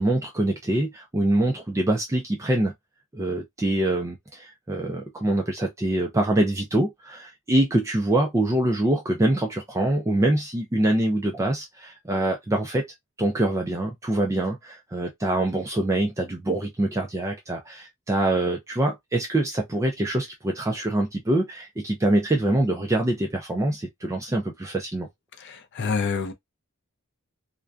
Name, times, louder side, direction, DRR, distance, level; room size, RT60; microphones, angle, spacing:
voice 1, 0.0-2.7 3.1-12.9 13.2-25.1, right 1 dB, 15° right, 0.3 m, -24 dB
voice 2, 25.4-26.3, left 5 dB, 55° left, 0.5 m, -27 dB
2.5 x 2.2 x 2.3 m
head